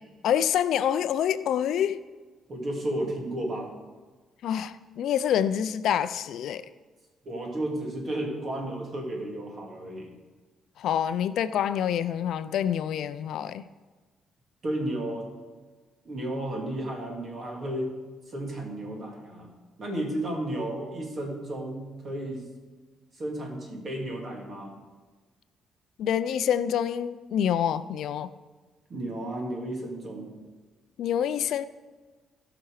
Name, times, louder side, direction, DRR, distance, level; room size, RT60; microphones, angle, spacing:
voice 1, 0.2-2.0 4.4-6.6 10.8-13.7 26.0-28.3 31.0-31.7, left 9 dB, 75° left, 13 dB, 0.5 m, -26 dB
voice 2, 2.5-3.7 7.2-10.1 14.6-15.3 16.0-17.9 18.3-19.5 19.8-22.5 23.1-24.8 28.9-30.4, right 1 dB, 40° right, 0 dB, 2.5 m, -33 dB
16.5 x 6.1 x 4.8 m, 1.3 s
cardioid pair, 125°, 0 cm